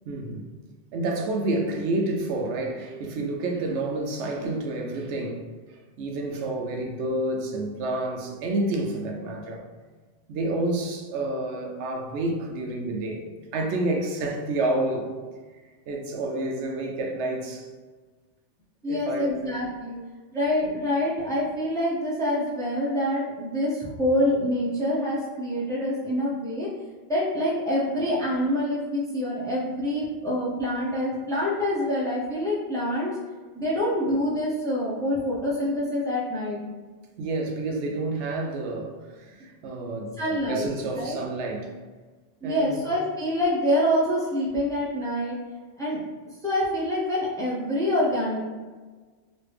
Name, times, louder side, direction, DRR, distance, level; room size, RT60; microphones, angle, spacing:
voice 1, 0.1-0.4 0.9-9.6 10.3-15.2 15.9-17.7 18.9-19.4 37.2-40.2 40.5-41.7 42.4-42.8, right 2 dB, 90° right, 0.9 m, -29 dB
voice 2, 18.8-20.0 20.3-26.7 27.1-33.2 33.5-36.6 40.2-40.7 41.0-41.2 42.4-45.4 45.8-46.0 46.4-48.4, left 1 dB, 5° left, 0.5 m, -26 dB
3.1 x 2.5 x 3.3 m
omnidirectional pair, 1.1 m